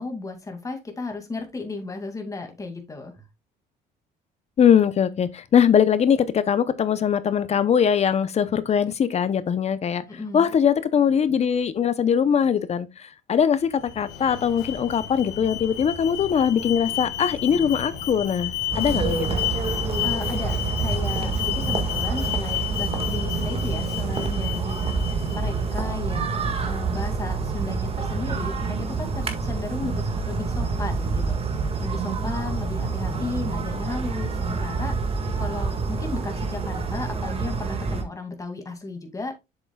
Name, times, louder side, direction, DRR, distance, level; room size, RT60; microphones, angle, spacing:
voice 1, 0.0-3.2 10.1-10.5 20.0-24.8 25.3-35.0 35.4-39.3, left 3 dB, 20° left, 2.3 m, -34 dB
voice 2, 4.6-10.0 10.3-19.3, left 8 dB, 40° left, 0.7 m, -21 dB
Alarm, 13.6-25.7, left 11 dB, 85° left, 1.5 m, -32 dB
sound 1, 18.7-38.0, right 4 dB, 35° right, 1.8 m, -27 dB
7.5 x 7.1 x 2.3 m
cardioid pair, 110°, 17 cm